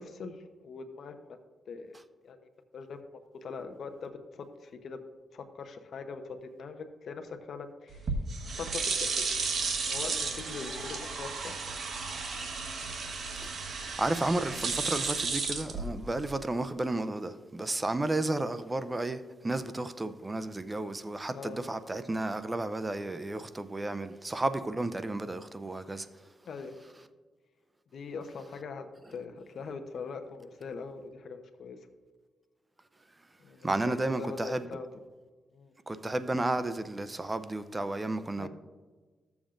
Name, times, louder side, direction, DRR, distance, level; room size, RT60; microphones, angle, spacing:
voice 1, 0.0-1.4 1.7-2.0 2.2-2.4 2.7-3.0 3.4-5.0 5.3-8.1 8.6-9.2 9.8-11.6 21.3-21.6 26.4-26.7 27.9-31.8 33.4-34.9 35.5-35.7 38.4-38.5, left 5 dB, 70° left, 0.8 m, -42 dB
sound 1, 7.9-16.4, right 4 dB, 65° right, 1.2 m, -33 dB
voice 2, 13.9-26.1 33.6-34.7 35.9-38.5, right 2 dB, 20° right, 0.5 m, -32 dB
14.5 x 7.1 x 2.5 m
cardioid pair, 80°, 0 cm